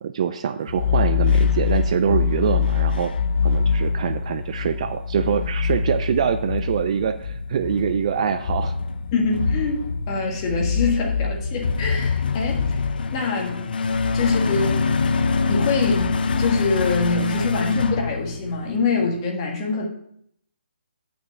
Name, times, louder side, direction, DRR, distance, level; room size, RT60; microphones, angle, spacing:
voice 1, 0.0-3.1 3.4-8.7, right 8 dB, 30° right, 10 dB, 0.3 m, -24 dB
sound 1, 0.7-18.8, left 5 dB, 50° left, 0.6 m, -24 dB
voice 2, 9.1-12.8 13.1-13.7 14.1-14.9 15.5-19.9, left 4 dB, 25° left, 0 dB, 1.6 m, -25 dB
8.4 x 5.9 x 5.6 m, 0.71 s
hypercardioid pair, 165°, 6 cm